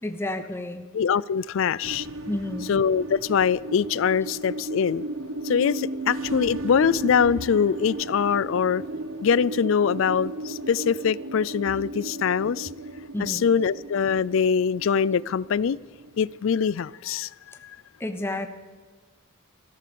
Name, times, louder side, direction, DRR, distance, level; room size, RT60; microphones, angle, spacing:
voice 1, 0.0-0.8 2.3-2.7 13.1-13.4 18.0-18.5, left 1 dB, 10° left, 7 dB, 0.7 m, -30 dB
voice 2, 0.9-2.1 2.7-5.0 5.4-8.8 9.2-12.7 13.2-15.8 16.2-17.3 17.6-17.8, left 7 dB, 60° left, 22 dB, 0.4 m, -23 dB
sound 1, 1.8-16.5, right 2 dB, 70° right, 0.9 m, -35 dB
15.0 x 13.0 x 6.8 m, 1.4 s
head